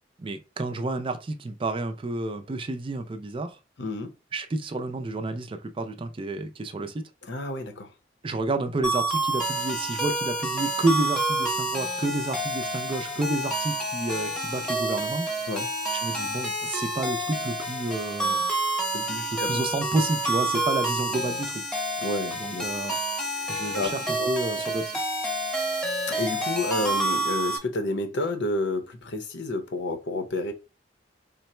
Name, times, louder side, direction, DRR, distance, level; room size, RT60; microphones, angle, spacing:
voice 1, 0.2-3.6 4.3-7.0 8.2-15.3 15.9-18.4 19.3-21.6 22.4-23.0 23.5-25.0, right 2 dB, 30° right, 0.4 m, -30 dB
voice 2, 3.8-4.1 7.2-7.9 15.5-15.7 18.9-19.6 22.0-22.7 23.2-23.9 24.2-24.6 26.1-30.5, left 2 dB, 65° left, 0.8 m, -30 dB
sound 1, 8.8-27.6, right 2 dB, 5° left, 0.9 m, -28 dB
3.8 x 2.1 x 4.2 m
head